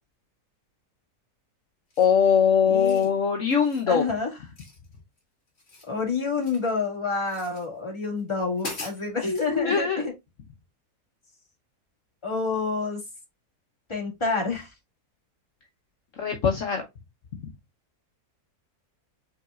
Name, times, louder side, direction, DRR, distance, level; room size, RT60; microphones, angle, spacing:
sound 1, 1.9-2.3 2.7-3.1 3.5-3.9 4.6-5.2 5.5-6.7 7.3-7.7 8.2-8.3 8.6-9.5, left 2 dB, 45° left, 2.1 m, -41 dB
voice 1, 2.0-4.0 9.5-10.0 16.2-16.8, left 7 dB, 60° left, 1.2 m, -21 dB
voice 2, 2.6-3.1 3.9-4.3 5.9-10.1 12.2-13.0 13.9-14.7, left 4 dB, 20° left, 2.0 m, -28 dB
5.8 x 3.9 x 2.3 m
omnidirectional pair, 1.6 m